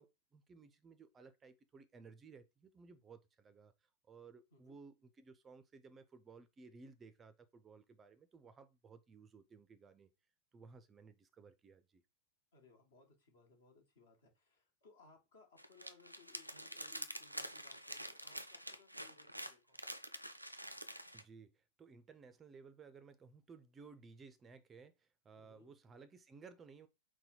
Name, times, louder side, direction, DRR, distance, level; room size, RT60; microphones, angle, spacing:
voice 1, 0.0-10.1 10.5-12.0 21.1-26.9, right 5 dB, 20° right, 0.4 m, -58 dB
voice 2, 12.5-19.9 25.4-25.7, left 4 dB, 60° left, 1.2 m, -65 dB
sound 1, 15.6-21.2, equal, 90° right, 0.4 m, -47 dB
4.0 x 2.2 x 4.3 m
figure-of-eight pair, 90°, 0 cm